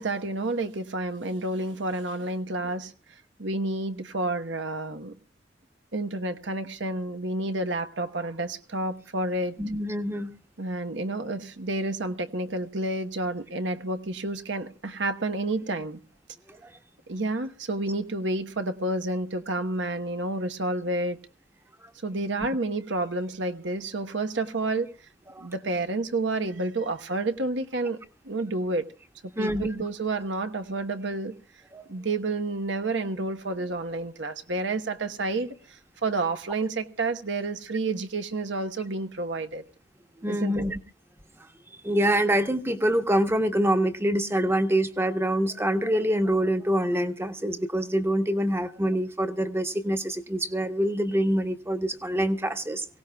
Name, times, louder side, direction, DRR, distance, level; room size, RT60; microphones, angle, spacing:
voice 1, 0.0-2.9 3.4-5.2 5.9-9.6 10.6-16.0 17.1-21.2 22.0-24.9 25.4-28.0 28.2-28.9 29.4-31.3 31.9-39.6 40.3-40.6, right 2 dB, 80° right, 1.1 m, -30 dB
voice 2, 9.6-10.3 16.5-16.7 22.4-22.5 25.3-25.5 29.4-29.7 31.7-31.8 40.2-40.8 41.8-52.9, right 1 dB, 15° right, 1.1 m, -25 dB
24.0 x 17.0 x 2.3 m
head